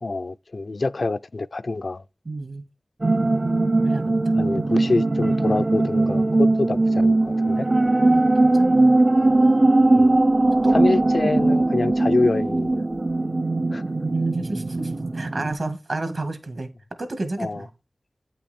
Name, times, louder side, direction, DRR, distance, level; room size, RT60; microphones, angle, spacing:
voice 1, 0.0-2.0 4.4-7.7 10.0-10.2 10.7-12.8 13.7-13.8 17.4-17.6, left 3 dB, 60° left, 0.4 m, -26 dB
voice 2, 2.3-2.6 3.8-4.4 8.0-9.0 10.5-10.9 13.8-16.7 17.0-17.7, right 2 dB, 70° right, 1.7 m, -31 dB
sound 1, 3.0-15.5, right 2 dB, 40° right, 0.4 m, -20 dB
8.9 x 5.7 x 4.2 m
wide cardioid pair, 75°, 0 cm